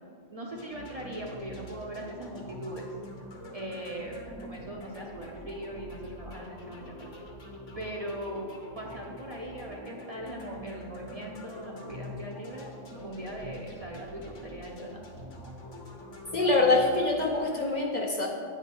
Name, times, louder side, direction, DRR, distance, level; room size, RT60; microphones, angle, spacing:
voice 1, 0.3-2.9 3.5-7.1 7.7-8.5 8.7-15.0, right 1 dB, 35° right, -2 dB, 0.7 m, -40 dB
sound 1, 0.5-17.7, left 1 dB, 70° left, 1.4 m, -45 dB
voice 2, 16.3-18.3, left 2 dB, 40° left, -1 dB, 0.8 m, -24 dB
8.3 x 5.2 x 5.3 m, 2.2 s
omnidirectional pair, 1.3 m